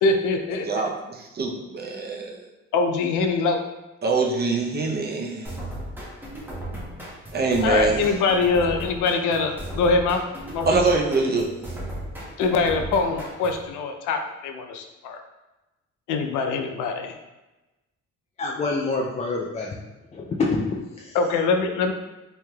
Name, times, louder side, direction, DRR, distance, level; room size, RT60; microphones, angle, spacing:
voice 1, 0.0-0.9 2.7-3.6 7.6-10.2 10.5-10.8 12.4-15.2 16.1-17.1 21.1-21.9, left 4 dB, 85° left, 5 dB, 0.5 m, -23 dB
voice 2, 0.7-2.4 4.0-5.5 7.3-8.0 10.7-11.7, right 3 dB, 35° right, 1 dB, 0.6 m, -24 dB
sound 1, 5.4-13.7, right 1 dB, 5° right, 0.8 m, -36 dB
voice 3, 18.4-19.8 20.1-21.2, left 3 dB, 25° left, -2 dB, 0.3 m, -27 dB
3.2 x 2.8 x 2.2 m, 1.0 s
cardioid pair, 90°, 30 cm